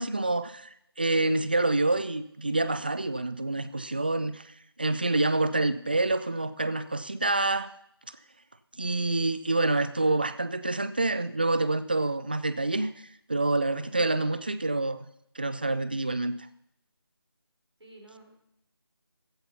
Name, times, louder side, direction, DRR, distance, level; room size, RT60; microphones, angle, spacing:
voice 1, 0.0-4.5 4.8-7.7 8.8-15.0 15.4-16.3, right 2 dB, 20° right, 13 dB, 0.3 m, -27 dB
voice 2, 13.7-14.1 17.8-18.4, right 2 dB, 90° right, 1 dB, 4.7 m, -53 dB
15.0 x 8.0 x 5.6 m, 0.75 s
figure-of-eight pair, 165°, 13 cm